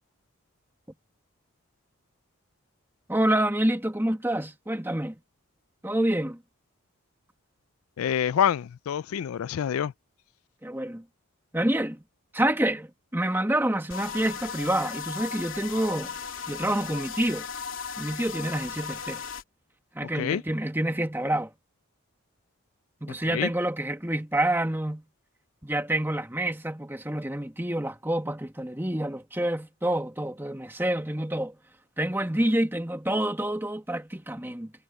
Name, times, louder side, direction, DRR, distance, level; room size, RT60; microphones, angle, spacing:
voice 1, 3.1-5.2 5.8-6.4 10.6-11.0 11.5-12.0 12.3-16.1 16.5-17.5 18.0-19.2 19.9-21.5 23.0-25.0 25.6-31.6 32.0-34.7, right 1 dB, 10° right, 1.8 m, -27 dB
voice 2, 8.0-9.9 20.1-20.4 23.3-23.5, left 9 dB, 85° left, 0.4 m, -26 dB
sound 1, 13.9-19.4, left 6 dB, 65° left, 3.2 m, -36 dB
head